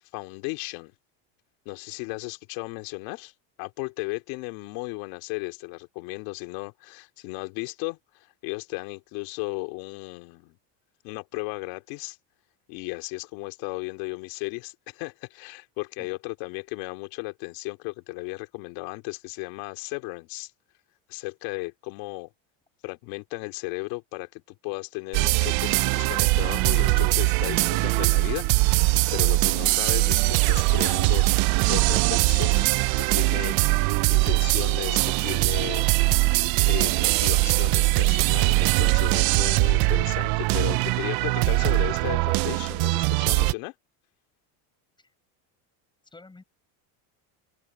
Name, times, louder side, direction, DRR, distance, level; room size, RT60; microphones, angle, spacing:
voice 1, 0.1-0.9 1.6-3.3 3.6-10.6 11.0-12.2 12.7-20.5 21.1-22.3 22.8-31.3 31.7-36.2 36.6-43.7, left 26 dB, 75° left, 3.1 m, -35 dB
sound 1, 25.1-43.5, right 24 dB, 55° right, 0.5 m, -22 dB
voice 2, 46.0-46.4, left 3 dB, 10° left, 7.7 m, -49 dB
open air
cardioid pair, 160°, 45 cm